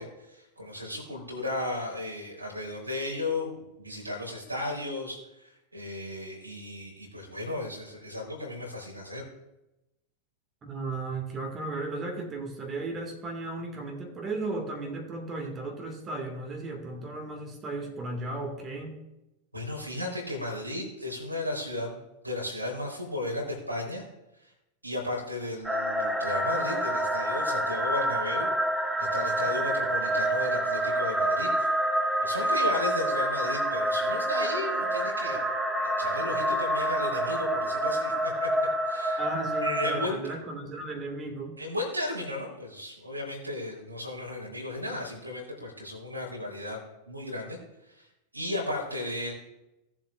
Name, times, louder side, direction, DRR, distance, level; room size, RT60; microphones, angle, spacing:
voice 1, 0.0-9.2 19.5-22.0 22.2-24.1 24.4-24.5 24.8-28.5 29.0-31.7 32.2-35.4 35.8-39.2 39.6-40.2 41.6-46.8 47.1-47.6 47.9-48.1 48.3-49.3, left 2 dB, 85° right, -1 dB, 4.0 m, -35 dB
voice 2, 10.6-19.0 39.2-41.6, right 2 dB, 20° right, 1 dB, 2.0 m, -35 dB
sound 1, 25.6-40.1, right 1 dB, 5° right, 0.9 m, -28 dB
18.0 x 7.3 x 2.5 m, 0.94 s
figure-of-eight pair, 90°, 0 cm